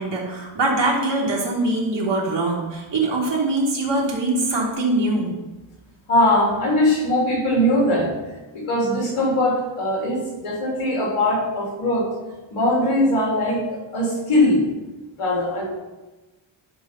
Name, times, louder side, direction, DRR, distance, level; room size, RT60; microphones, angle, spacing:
voice 1, 0.0-5.4, right 2 dB, 55° right, -4 dB, 3.4 m, -23 dB
voice 2, 6.1-8.1 8.5-12.1 12.5-14.6 15.2-15.8, left 1 dB, 90° left, -3 dB, 3.8 m, -21 dB
11.5 x 5.6 x 5.5 m, 1.1 s
wide cardioid pair, 115°, 50 cm